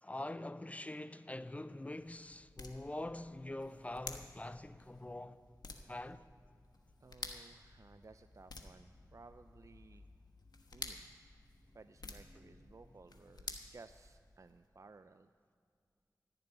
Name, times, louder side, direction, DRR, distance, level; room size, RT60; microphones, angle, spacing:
voice 1, 0.0-5.4 5.9-6.3, left 1 dB, 20° left, 0.5 m, -44 dB
sound 1, 1.4-14.5, left 3 dB, 75° left, 1.2 m, -52 dB
voice 2, 7.0-10.1 10.7-11.1 11.7-15.3, right 3 dB, 50° right, 0.4 m, -58 dB
14.5 x 6.8 x 9.7 m
wide cardioid pair, 50°, 7 cm